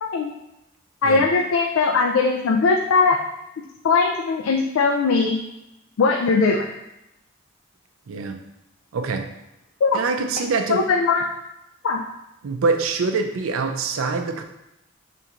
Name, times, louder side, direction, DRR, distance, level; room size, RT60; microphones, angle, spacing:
voice 1, 0.0-0.3 1.0-3.2 3.8-5.4 6.0-6.7 9.8-10.0 10.7-11.2 11.8-12.0, left 4 dB, 85° left, 1 dB, 0.4 m, -19 dB
voice 2, 8.1-8.4 8.9-9.3 9.9-10.8 12.4-14.4, right 4 dB, 85° right, 6 dB, 0.4 m, -24 dB
3.4 x 3.0 x 3.7 m, 0.90 s
head